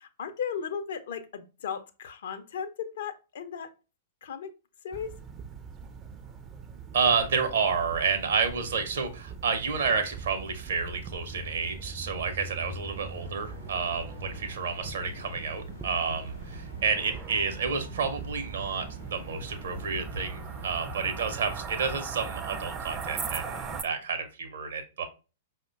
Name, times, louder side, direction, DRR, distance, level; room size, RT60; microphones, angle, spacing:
voice 1, 0.0-3.7 4.2-4.5 4.8-5.1, left 7 dB, 55° left, 9 dB, 0.4 m, -36 dB
sound 1, 4.9-23.8, right 6 dB, 20° right, 0.3 m, -40 dB
voice 2, 6.9-25.1, right 5 dB, 60° right, 7 dB, 0.6 m, -30 dB
sound 2, 12.8-21.0, equal, 90° left, 0.7 m, -45 dB
4.8 x 2.1 x 2.5 m, 0.32 s
figure-of-eight pair, 105°, 0 cm